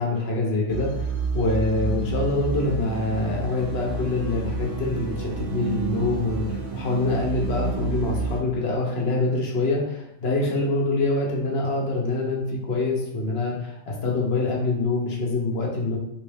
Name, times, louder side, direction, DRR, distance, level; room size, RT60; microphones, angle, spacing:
voice 1, 0.0-16.0, left 2 dB, 60° left, -1 dB, 0.9 m, -25 dB
sound 1, 0.7-8.4, right 4 dB, 55° right, 0.7 m, -30 dB
3.1 x 2.7 x 3.4 m, 0.82 s
omnidirectional pair, 1.3 m